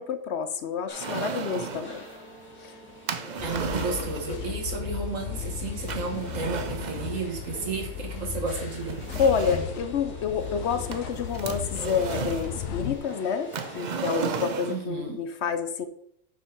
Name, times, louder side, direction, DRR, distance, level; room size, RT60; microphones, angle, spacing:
voice 1, 0.0-2.0 2.6-2.7 9.1-15.9, left 6 dB, 65° left, 10 dB, 0.9 m, -28 dB
sound 1, 0.9-14.5, left 1 dB, 10° left, 2.5 m, -45 dB
sound 2, 1.0-1.9 3.1-4.4 5.9-7.2 8.2-8.3 8.9-9.8 10.9-12.5 13.5-14.9, right 5 dB, 45° right, 0.6 m, -34 dB
sound 3, 3.4-13.0, left 8 dB, 85° left, 1.1 m, -35 dB
voice 2, 3.4-9.0 14.7-15.2, right 4 dB, 75° right, 3 dB, 1.9 m, -33 dB
6.5 x 5.0 x 5.8 m, 0.71 s
omnidirectional pair, 1.4 m